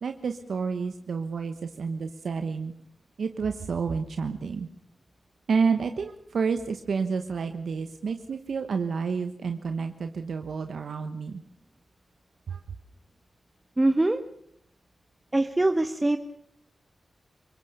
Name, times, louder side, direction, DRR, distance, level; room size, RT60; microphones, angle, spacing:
voice 1, 0.0-2.7 3.2-4.7 5.5-11.4 12.5-12.6, right 5 dB, 80° right, 7 dB, 1.1 m, -29 dB
voice 2, 13.8-14.2 15.3-16.2, right 2 dB, 25° right, 8 dB, 1.3 m, -23 dB
27.5 x 18.0 x 6.9 m, 0.71 s
cardioid pair, 50°, 0 cm